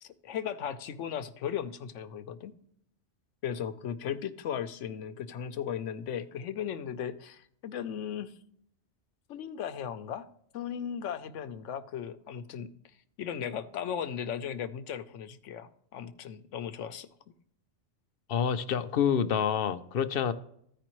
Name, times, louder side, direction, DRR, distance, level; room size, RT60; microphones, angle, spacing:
voice 1, 0.0-2.5 3.4-8.3 9.3-10.3 10.5-12.7 13.2-17.1, left 8 dB, 85° left, 10 dB, 1.0 m, -36 dB
voice 2, 18.3-20.3, left 7 dB, 60° left, 11 dB, 0.7 m, -27 dB
15.0 x 5.0 x 3.0 m, 0.70 s
omnidirectional pair, 1.2 m